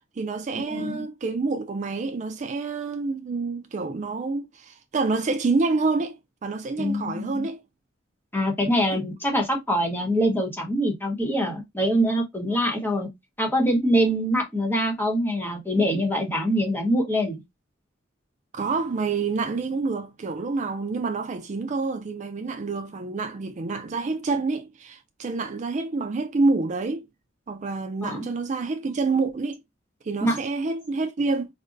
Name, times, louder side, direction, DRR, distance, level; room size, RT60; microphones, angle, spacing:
voice 1, 0.2-7.6 8.9-9.0 11.4-11.5 12.5-12.7 18.5-27.1 27.5-29.6 30.0-31.5, right 3 dB, 35° right, 0.4 m, -27 dB
voice 2, 6.8-7.5 8.3-13.1 13.4-17.4 28.0-28.2 30.2-30.4, equal, 10° left, 1.0 m, -24 dB
5.1 x 2.2 x 2.5 m
head